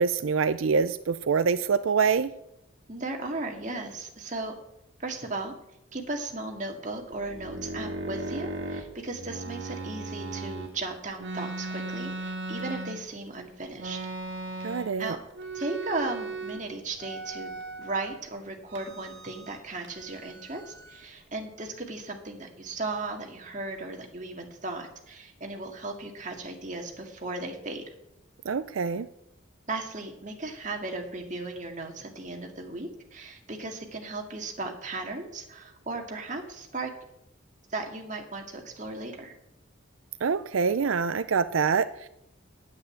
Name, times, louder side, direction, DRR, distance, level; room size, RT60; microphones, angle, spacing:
voice 1, 0.0-2.3 14.6-15.2 28.5-29.1 40.2-42.1, right 5 dB, 90° right, 13 dB, 0.5 m, -25 dB
voice 2, 2.9-4.5 5.0-5.5 5.9-14.0 15.0-15.2 15.5-17.5 17.8-27.8 29.7-36.9 37.7-39.3, right 2 dB, 40° right, 3 dB, 2.0 m, -36 dB
sound 1, 7.1-10.7 11.2-13.3 13.8-15.0 15.3-16.6 17.0-18.2 18.7-19.6 19.8-21.0, right 2 dB, 65° right, 2.0 m, -37 dB
9.4 x 8.5 x 9.8 m, 0.82 s
head